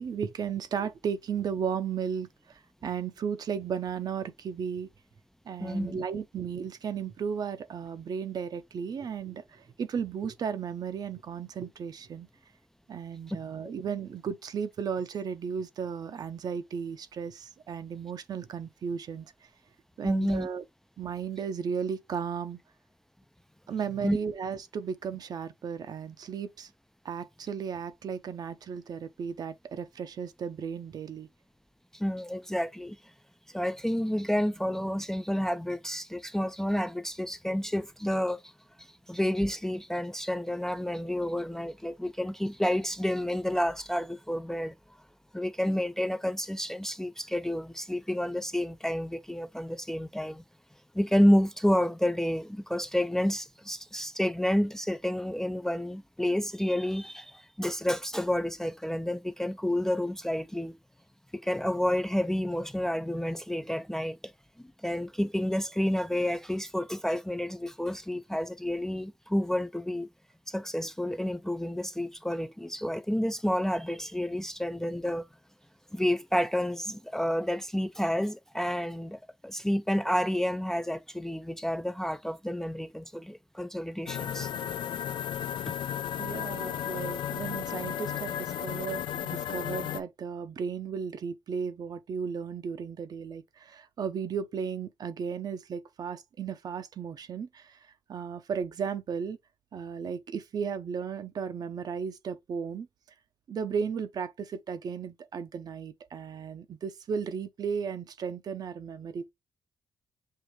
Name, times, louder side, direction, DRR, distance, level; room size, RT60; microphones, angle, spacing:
voice 1, 0.0-4.9 5.4-12.3 12.9-19.5 20.0-20.6 21.0-22.6 23.7-26.7 27.0-31.3 86.2-99.4 99.7-102.9 103.5-109.3, right 6 dB, 55° right, 0.6 m, -35 dB
voice 2, 5.6-6.0 20.0-20.5 24.0-24.2 31.9-33.0 33.5-38.5 39.1-44.8 45.3-50.4 50.9-60.8 61.3-64.2 64.8-70.1 70.5-75.3 75.9-84.5, equal, 5° left, 0.3 m, -30 dB
sound 1, 84.1-90.0, left 10 dB, 80° left, 0.4 m, -34 dB
6.5 x 2.5 x 3.0 m
cardioid pair, 85°, 8 cm